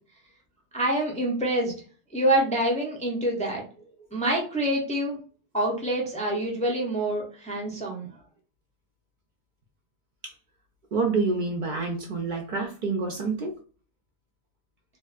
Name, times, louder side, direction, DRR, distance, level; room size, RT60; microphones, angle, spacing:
voice 1, 0.7-1.7 2.1-3.6 4.1-5.2 5.5-8.1, right 1 dB, 10° left, -1 dB, 0.5 m, -26 dB
voice 2, 10.9-13.5, right 4 dB, 55° right, 2 dB, 0.6 m, -27 dB
2.9 x 2.2 x 2.4 m, 0.41 s
omnidirectional pair, 1.1 m